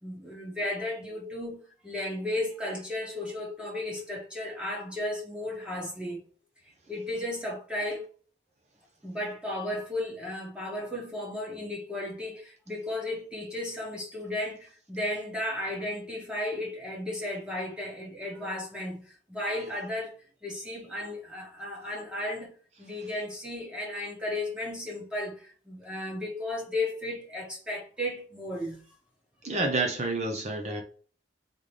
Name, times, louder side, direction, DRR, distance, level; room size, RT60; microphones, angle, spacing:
voice 1, 0.0-6.2 6.9-8.1 9.0-22.5 22.8-28.8, left 1 dB, 5° right, 1.4 m, -34 dB
voice 2, 29.4-30.8, right 2 dB, 40° right, 0.8 m, -29 dB
3.9 x 3.8 x 3.3 m
head